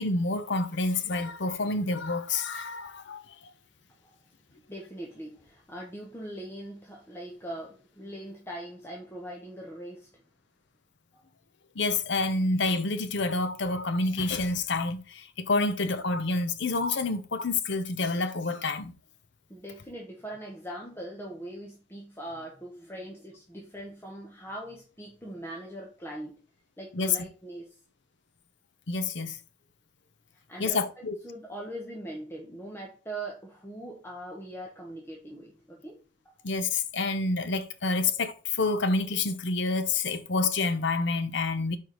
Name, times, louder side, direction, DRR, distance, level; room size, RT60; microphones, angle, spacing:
voice 1, 0.0-3.4 11.8-19.0 26.9-27.2 28.9-29.4 30.6-31.1 36.4-41.8, left 3 dB, 60° left, 0.8 m, -28 dB
voice 2, 4.5-10.2 11.1-11.2 19.5-26.4 26.8-27.8 30.3-36.3, right 1 dB, 10° left, 1.0 m, -41 dB
4.8 x 4.7 x 5.2 m
head